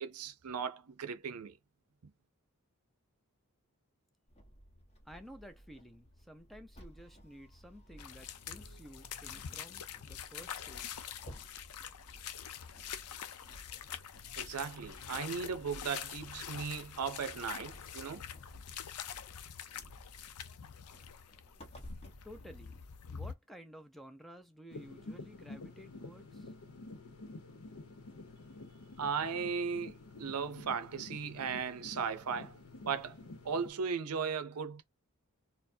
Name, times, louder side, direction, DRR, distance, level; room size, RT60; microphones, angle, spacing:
voice 1, 0.0-1.5 14.4-18.3 29.0-29.9 30.2-32.5 32.9-33.2 33.4-34.8, right 6 dB, 85° right, 0.6 m, -37 dB
sound 1, 4.3-23.0, equal, 30° left, 1.0 m, -56 dB
voice 2, 5.1-11.1 22.2-22.7 23.1-26.5, equal, ahead, 0.5 m, -53 dB
sound 2, 8.0-23.4, left 8 dB, 90° left, 0.5 m, -45 dB
sound 3, 24.7-33.7, left 2 dB, 70° left, 0.9 m, -49 dB
4.3 x 2.1 x 2.7 m
head